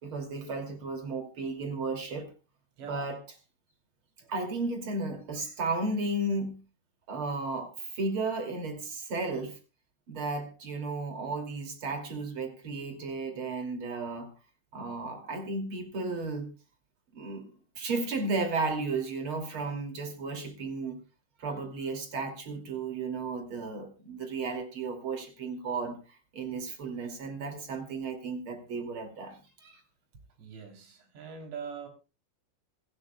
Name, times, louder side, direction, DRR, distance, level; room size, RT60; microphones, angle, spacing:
voice 1, 0.0-2.3 2.8-3.2 4.3-6.6 7.1-9.6 10.1-14.3 14.7-16.5 17.1-17.5 17.7-21.0 21.4-26.0 26.3-29.8, right 3 dB, 35° right, 5 dB, 2.5 m, -34 dB
voice 2, 30.4-31.9, right 6 dB, 60° right, 4 dB, 5.5 m, -42 dB
26.5 x 12.0 x 2.3 m, 0.31 s
omnidirectional pair, 5.8 m